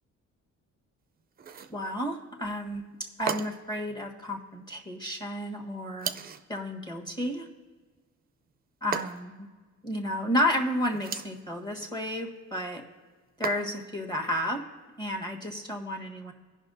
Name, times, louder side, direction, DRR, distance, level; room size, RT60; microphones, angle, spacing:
sound 1, 1.4-1.8 3.3-3.8 6.0-6.5 8.9-9.5 10.9-11.4 13.4-14.0, right 7 dB, 30° right, 0.4 m, -35 dB
voice 1, 1.7-2.8 3.2-6.1 6.5-7.5 8.8-9.5 9.8-12.8 13.4-14.6 15.0-16.3, equal, 15° left, 1 dB, 1.5 m, -31 dB
16.5 x 5.6 x 2.6 m, 1.4 s
cardioid pair, 90°, 30 cm